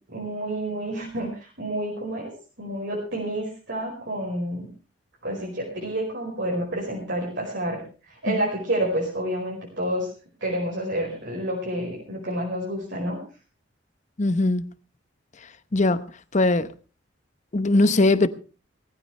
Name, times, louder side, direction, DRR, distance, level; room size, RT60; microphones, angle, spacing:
voice 1, 0.1-4.7 5.2-10.1 10.4-13.2, right 1 dB, 60° right, 5.1 m, -29 dB
voice 2, 14.2-14.7 15.7-16.0 16.3-16.7 17.5-18.3, left 2 dB, 40° left, 0.8 m, -20 dB
19.0 x 15.0 x 3.3 m
head